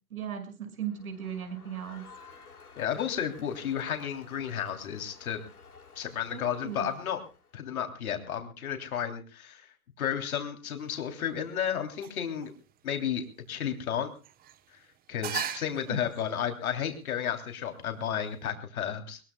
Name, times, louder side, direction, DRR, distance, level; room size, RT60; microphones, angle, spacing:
voice 1, 0.1-2.0 6.3-6.9 15.8-16.0, right 8 dB, 70° right, 7 dB, 6.4 m, -37 dB
Crowd, 0.8-7.6, left 5 dB, 90° left, 6.6 m, -53 dB
voice 2, 2.8-5.4 5.9-7.2 7.5-9.7 10.0-12.5 12.8-14.1 14.7-14.8 15.1-19.2, left 9 dB, 70° left, 6 dB, 3.4 m, -32 dB
sound 1, 10.8-18.5, right 9 dB, 20° right, 1.1 m, -43 dB
22.0 x 21.0 x 2.3 m, 0.34 s
hypercardioid pair, 120°, 44 cm